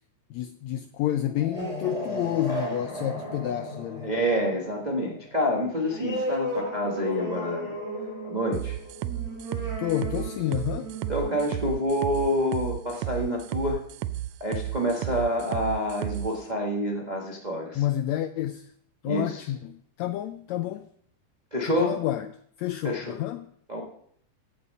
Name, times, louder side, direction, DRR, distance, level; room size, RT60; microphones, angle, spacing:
voice 1, 0.3-4.1 9.8-10.9 17.7-18.7 19.0-20.9 21.6-22.3 22.6-23.5, left 13 dB, 85° left, 1.6 m, -29 dB
sound 1, 1.3-12.5, equal, 10° left, 2.9 m, -35 dB
voice 2, 4.0-7.8 8.2-8.8 11.1-13.8 14.4-17.8 19.0-19.5 21.5-22.0 22.8-23.1 23.7-23.8, equal, 65° right, 0.4 m, -27 dB
sound 2, 8.5-16.3, right 14 dB, 85° right, 1.5 m, -33 dB
15.5 x 7.0 x 5.4 m
omnidirectional pair, 3.7 m